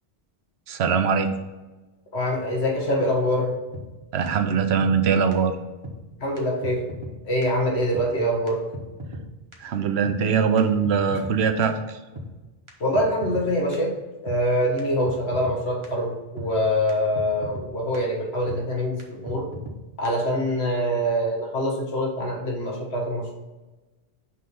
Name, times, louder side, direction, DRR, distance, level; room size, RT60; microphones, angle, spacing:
voice 1, 0.7-1.3 4.1-5.5 9.6-12.0, right 6 dB, 80° right, 7 dB, 0.9 m, -22 dB
voice 2, 2.1-3.6 6.2-6.8 7.2-8.6 12.8-14.0 14.2-19.5 20.0-23.3, equal, 85° left, -1 dB, 1.6 m, -24 dB
sound 1, 3.7-3.9 4.3-4.4 4.5-5.0 5.3-5.4 5.8-6.0 6.4-6.5 6.6-7.1 7.4-7.5 7.9-8.1 8.5-8.6 8.7-9.2 9.5-9.6 10.0-10.2 10.6-11.4 11.6-11.7 12.2-12.3 12.7-12.8 12.9-13.5 13.7-13.8 14.3-14.4 14.8-14.9 15.0-15.6 15.8-15.9 16.4-16.5 16.9-17.0 17.2-17.7 17.9-18.0 18.5-18.6 19.0-19.1 19.3-19.8 20.0-20.1, equal, 30° right, 0.9 m, -36 dB
5.7 x 3.2 x 5.3 m, 1.1 s
omnidirectional pair, 1.1 m